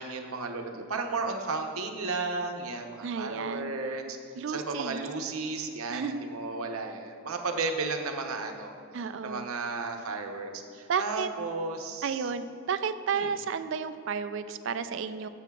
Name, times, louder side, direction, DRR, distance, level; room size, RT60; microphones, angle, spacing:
voice 1, 0.0-4.2 4.5-8.7 9.2-12.3 13.1-13.3, right 3 dB, 80° right, 4 dB, 0.8 m, -34 dB
voice 2, 3.0-3.7 4.3-5.0 5.9-6.2 8.9-9.5 10.9-11.3 12.0-15.3, right 6 dB, 60° right, 10 dB, 0.3 m, -32 dB
11.5 x 7.9 x 2.3 m, 2.4 s
head